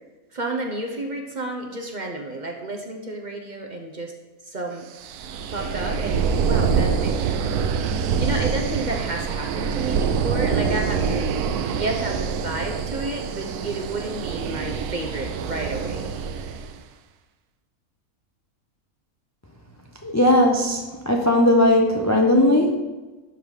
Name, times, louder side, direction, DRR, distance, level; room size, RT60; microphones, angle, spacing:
voice 1, 0.3-4.1 4.4-4.8 5.5-7.5 8.2-11.3 11.7-16.1, right 2 dB, 40° right, 2 dB, 0.8 m, -31 dB
sound 1, 5.0-16.8, right 6 dB, 85° right, 1.1 m, -25 dB
voice 2, 20.0-22.7, left 1 dB, 25° left, 1 dB, 0.3 m, -18 dB
12.0 x 4.0 x 4.8 m, 1.2 s
omnidirectional pair, 1.6 m